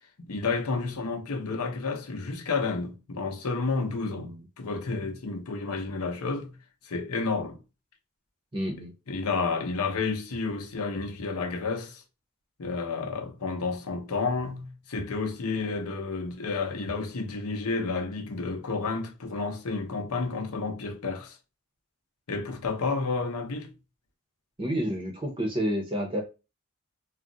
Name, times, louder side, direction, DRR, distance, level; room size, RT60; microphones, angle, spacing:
voice 1, 0.2-6.6 6.8-7.6 9.1-12.0 12.6-21.4 22.3-23.7, left 4 dB, 85° left, 0.7 m, -31 dB
voice 2, 4.1-4.4 8.5-8.9 24.6-26.2, equal, 25° right, 0.6 m, -30 dB
2.3 x 2.1 x 3.7 m
head